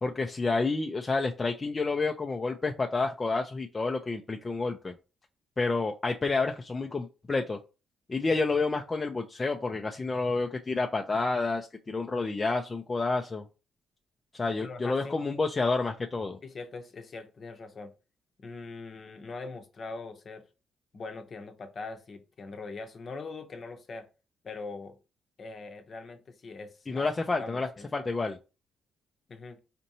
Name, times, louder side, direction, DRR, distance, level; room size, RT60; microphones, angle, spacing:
voice 1, 0.0-4.9 5.6-7.6 8.1-13.5 14.3-16.4 26.9-28.4, left 3 dB, 25° left, 0.5 m, -29 dB
voice 2, 14.6-15.2 16.4-17.9 18.4-20.4 20.9-24.1 24.4-25.0 25.4-27.1 27.4-27.9 29.3-29.6, left 3 dB, 45° left, 0.8 m, -42 dB
4.3 x 2.7 x 2.9 m
cardioid pair, 90°, 0 cm